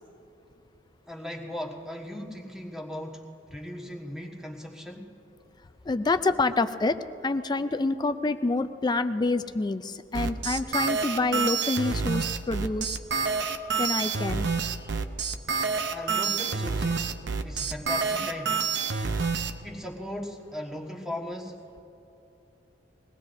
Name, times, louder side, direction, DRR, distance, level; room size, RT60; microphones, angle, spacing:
voice 1, 1.1-5.2 15.9-18.7 19.6-21.8, left 1 dB, 5° right, 0 dB, 1.4 m, -38 dB
voice 2, 5.9-13.0 13.8-14.5, left 3 dB, 20° left, 11 dB, 0.4 m, -27 dB
sound 1, 10.1-19.5, right 5 dB, 65° right, 0.7 m, -28 dB
22.0 x 18.0 x 2.6 m, 3.0 s
head